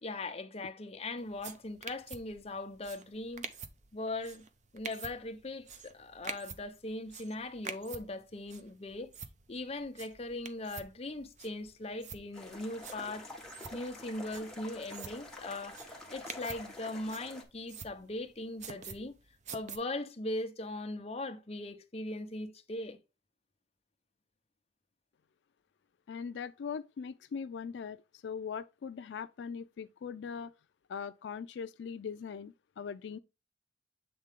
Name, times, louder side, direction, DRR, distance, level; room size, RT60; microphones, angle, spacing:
voice 1, 0.0-3.5 3.9-4.4 4.7-9.1 9.5-13.3 13.7-19.1 19.5-23.0, left 2 dB, 35° left, 0.8 m, -40 dB
sound 1, 1.2-19.8, right 5 dB, 45° right, 0.7 m, -48 dB
sound 2, 12.3-17.4, left 1 dB, 5° left, 1.6 m, -48 dB
voice 2, 26.1-30.5 30.9-33.2, left 6 dB, 85° left, 0.4 m, -41 dB
7.9 x 3.7 x 3.6 m
head